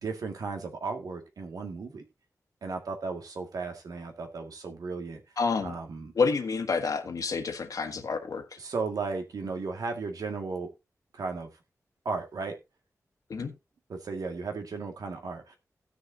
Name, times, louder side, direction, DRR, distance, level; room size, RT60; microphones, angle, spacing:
voice 1, 0.0-2.0 2.6-5.2 5.6-6.1 8.6-10.7 11.1-11.5 12.1-12.6 13.9-15.6, right 4 dB, 85° right, 2.0 m, -35 dB
voice 2, 5.4-5.7 6.1-8.6 13.3-13.5, left 4 dB, 70° left, 1.5 m, -29 dB
17.0 x 6.4 x 2.7 m
wide cardioid pair, 130°, 6 cm